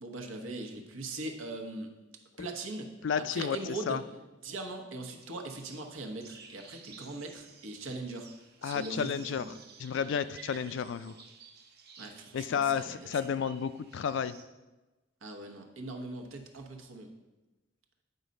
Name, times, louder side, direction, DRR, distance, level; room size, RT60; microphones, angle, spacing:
voice 1, 0.0-1.9 2.4-2.9 3.2-4.0 4.4-9.6 12.0-13.1 15.2-17.1, right 2 dB, 85° right, 4 dB, 1.0 m, -40 dB
voice 2, 3.0-4.0 8.6-9.5 9.8-11.2 12.3-14.4, left 7 dB, 65° left, 14 dB, 0.3 m, -32 dB
sound 1, 5.2-14.4, right 5 dB, 50° right, 0.7 m, -54 dB
8.9 x 4.0 x 5.2 m, 1.1 s
head